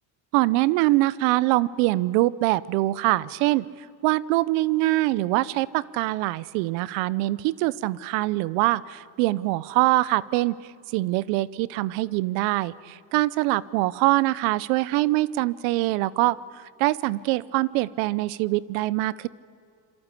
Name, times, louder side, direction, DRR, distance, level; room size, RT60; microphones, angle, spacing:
voice 1, 0.3-3.6 4.0-10.5 10.9-19.3, right 18 dB, 85° right, 20 dB, 0.9 m, -24 dB
27.0 x 24.0 x 8.3 m, 2.5 s
supercardioid pair, 100°, 50 cm